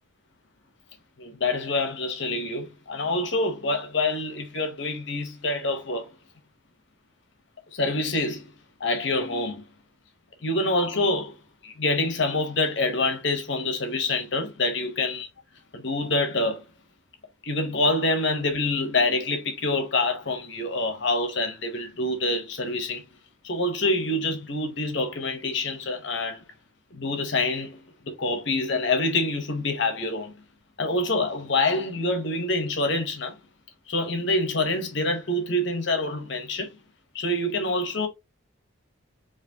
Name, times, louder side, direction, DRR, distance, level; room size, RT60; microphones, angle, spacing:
voice 1, 1.2-6.1 7.7-8.5 8.8-9.6 10.4-15.3 15.7-16.7 17.4-23.0 23.4-26.5 26.9-27.8 28.1-30.4 30.8-33.4 33.9-36.7 37.1-38.1, left 2 dB, 65° left, 0.8 m, -26 dB
4.9 x 2.4 x 2.7 m
head